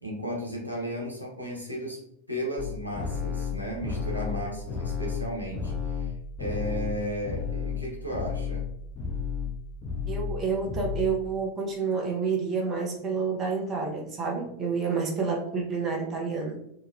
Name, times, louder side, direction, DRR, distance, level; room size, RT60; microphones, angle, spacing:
voice 1, 0.0-2.0 2.3-6.1 6.4-8.7, equal, 90° right, -3 dB, 0.7 m, -34 dB
sound 1, 2.6-7.8 8.1-8.7 9.0-9.5 9.8-10.4 10.7-11.1, left 6 dB, 25° left, 0.6 m, -32 dB
voice 2, 10.1-16.6, right 5 dB, 25° right, -1 dB, 0.6 m, -29 dB
2.9 x 2.2 x 2.5 m, 0.76 s
figure-of-eight pair, 90°, 0 cm